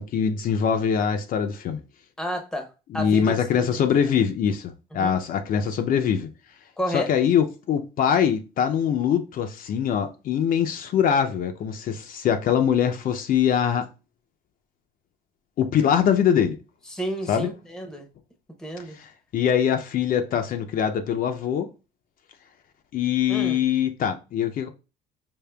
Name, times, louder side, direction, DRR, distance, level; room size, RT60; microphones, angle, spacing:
voice 1, 0.0-1.8 2.9-6.3 6.9-13.9 15.6-16.6 17.3-17.5 18.9-21.7 22.9-24.7, left 8 dB, 55° left, 0.5 m, -23 dB
voice 2, 2.2-3.8 4.9-5.1 6.8-7.1 16.9-18.1 18.6-19.0 23.3-23.6, equal, 5° left, 0.7 m, -31 dB
5.0 x 2.5 x 2.2 m
cardioid pair, 120°, 18 cm